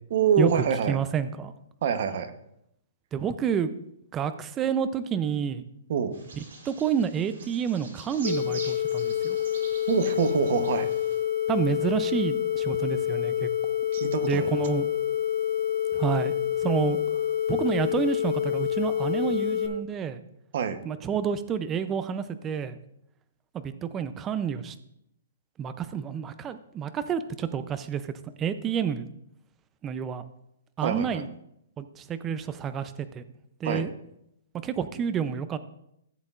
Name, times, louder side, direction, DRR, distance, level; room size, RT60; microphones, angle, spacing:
voice 1, 0.1-1.0 1.8-2.3 5.9-6.2 9.9-10.9 13.9-14.5 20.5-20.8 30.8-31.3 33.6-33.9, right 7 dB, 45° right, 9 dB, 0.8 m, -25 dB
voice 2, 0.9-1.5 3.1-3.7 4.1-5.6 6.6-9.4 11.5-13.5 14.2-14.9 15.9-16.3 16.6-17.0 17.5-20.2 20.8-22.8 23.5-24.7 25.6-29.1 29.8-30.3 30.8-31.3 31.8-33.2 33.6-33.9 34.6-35.6, right 7 dB, 15° right, 12 dB, 0.4 m, -29 dB
Bird vocalization bird call bird song, 6.1-11.2, right 3 dB, 60° right, 3.4 m, -45 dB
sound 1, 8.2-19.7, left 10 dB, 50° left, 1.3 m, -27 dB
15.0 x 7.6 x 2.4 m, 0.77 s
hypercardioid pair, 170°, 0 cm